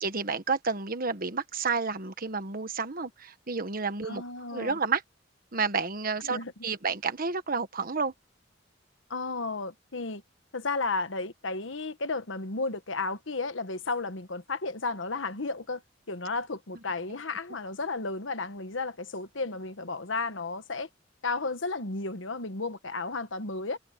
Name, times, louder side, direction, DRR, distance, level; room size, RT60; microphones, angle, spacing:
voice 1, 0.0-4.2 4.5-5.0 5.5-8.1 17.5-17.6, right 4 dB, 50° right, 1.4 m, -30 dB
voice 2, 4.0-4.8 6.2-6.5 9.1-10.2 10.5-15.8 16.1-20.9 21.2-23.8, left 3 dB, 75° left, 1.4 m, -33 dB
head